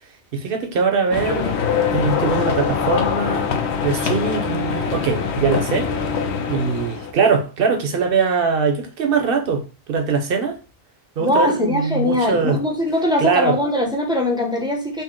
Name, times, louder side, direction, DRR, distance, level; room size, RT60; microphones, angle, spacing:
voice 1, 0.3-3.5 3.8-5.9 6.5-10.6 11.2-12.6 13.2-13.6, right 5 dB, 60° right, 0.9 m, -21 dB
sound 1, 1.1-7.1, left 6 dB, 80° left, 0.9 m, -23 dB
voice 2, 11.2-15.0, left 1 dB, 5° right, 0.5 m, -21 dB
4.1 x 2.0 x 3.6 m
omnidirectional pair, 1.1 m